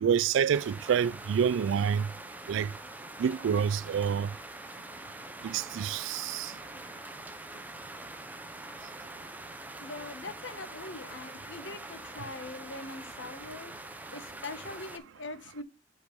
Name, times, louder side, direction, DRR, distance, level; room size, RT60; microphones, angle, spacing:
voice 1, 0.0-2.1 2.5-2.7 3.2-4.3 5.4-6.5, right 7 dB, 75° right, 0.3 m, -27 dB
sound 1, 0.5-15.0, right 2 dB, 10° right, 0.6 m, -44 dB
voice 2, 9.8-13.7 14.1-15.6, left 3 dB, 70° left, 1.0 m, -42 dB
5.3 x 4.5 x 5.1 m
head